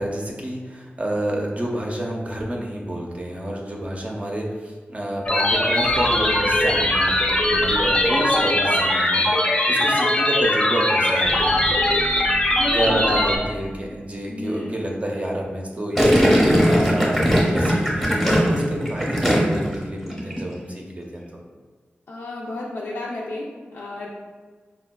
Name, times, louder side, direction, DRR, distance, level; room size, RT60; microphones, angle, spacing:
voice 1, 0.0-11.7 12.7-21.4, right 1 dB, 35° right, -1 dB, 0.5 m, -29 dB
sound 1, 5.3-13.4, left 1 dB, 25° left, 0.4 m, -20 dB
sound 2, 5.7-9.1 11.1-14.3, equal, 90° right, 0.6 m, -36 dB
voice 2, 12.5-13.2 14.3-14.8 22.1-24.1, left 2 dB, 90° left, -6 dB, 0.4 m, -32 dB
Gurgling, 16.0-19.7 20.0-20.4, equal, ahead, 0.7 m, -19 dB
4.1 x 2.2 x 2.2 m, 1.4 s
wide cardioid pair, 75°, 4 cm